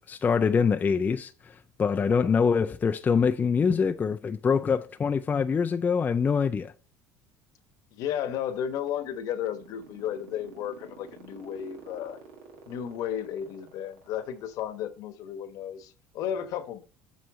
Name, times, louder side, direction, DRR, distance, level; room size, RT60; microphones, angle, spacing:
voice 1, 0.1-6.7, left 6 dB, 25° left, 0.3 m, -24 dB
voice 2, 7.9-12.2 12.7-16.8, left 9 dB, 65° left, 1.0 m, -33 dB
sound 1, 8.5-14.9, right 7 dB, 80° right, 1.5 m, -49 dB
7.7 x 3.1 x 5.1 m
supercardioid pair, 85°, 7 cm